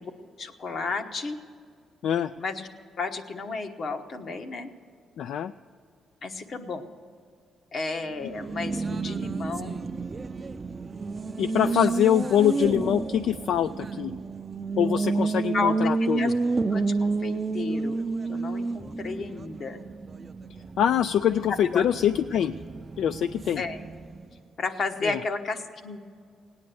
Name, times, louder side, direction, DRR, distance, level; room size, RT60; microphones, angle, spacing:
voice 1, 0.4-1.4 2.4-2.7 3.0-4.7 6.2-6.9 7.7-9.9 10.5-10.7 11.6-11.9 15.5-16.3 16.7-19.8 21.5-21.8 22.3-22.4 23.6-23.8 24.6-26.0, left 4 dB, 50° left, 6 dB, 1.1 m, -32 dB
voice 2, 5.2-5.5 11.4-14.1 14.8-16.3 20.8-22.5 23.0-23.6 25.0-25.2, left 10 dB, 75° left, 12 dB, 0.3 m, -24 dB
Race car auto racing, 8.1-24.4, right 3 dB, 30° right, 0.4 m, -30 dB
18.0 x 9.6 x 6.9 m, 2.3 s
cardioid pair, 90°, 0 cm